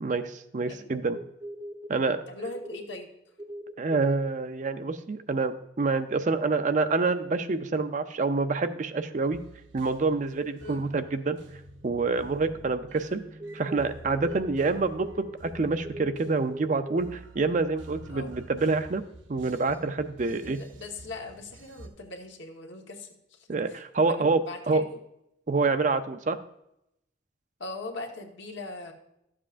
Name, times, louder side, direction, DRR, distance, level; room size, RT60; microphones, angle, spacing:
voice 1, 0.0-1.2 1.9-2.2 3.8-9.4 9.7-11.4 11.8-13.2 13.5-19.0 19.3-20.6 23.5-24.8 25.5-26.4, right 3 dB, 40° right, 10 dB, 0.5 m, -27 dB
sound 1, 1.1-2.1 2.4-3.0 3.4-4.3 6.1-6.2 8.5-8.6 11.5-11.6 11.8-12.4 12.7-12.9 13.4-14.7 14.9-17.0 17.4-17.5, equal, 20° right, 0.8 m, -40 dB
voice 2, 2.3-3.1 10.6-10.9 18.1-18.3 20.2-23.8 24.1-25.0 27.6-28.9, left 2 dB, 75° left, 2 dB, 1.2 m, -40 dB
sound 2, 9.3-21.9, right 1 dB, 80° right, 0.8 m, -49 dB
12.5 x 7.4 x 2.5 m, 0.80 s
head